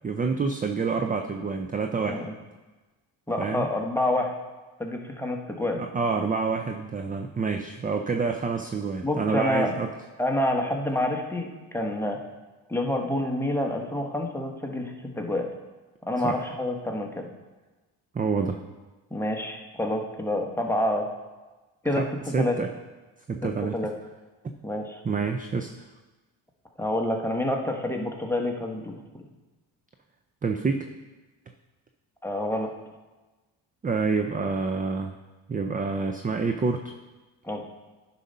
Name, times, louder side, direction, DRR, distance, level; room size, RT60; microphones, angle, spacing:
voice 1, 0.0-2.3 3.4-3.7 5.8-9.9 16.2-16.4 18.1-18.6 22.0-22.1 22.3-22.7 23.3-23.8 25.0-25.7 30.4-30.9 33.8-35.2 35.5-37.0, right 4 dB, 20° right, 6 dB, 0.4 m, -27 dB
voice 2, 3.3-4.3 4.8-5.8 9.0-9.7 10.2-12.2 12.7-15.5 16.1-17.3 19.1-21.1 21.8-22.5 23.7-23.9 24.6-25.0 26.8-29.2 32.2-32.7 37.4-37.6, left 1 dB, 5° left, 1 dB, 1.1 m, -28 dB
9.8 x 4.1 x 5.4 m, 1.2 s
cardioid pair, 80°, 47 cm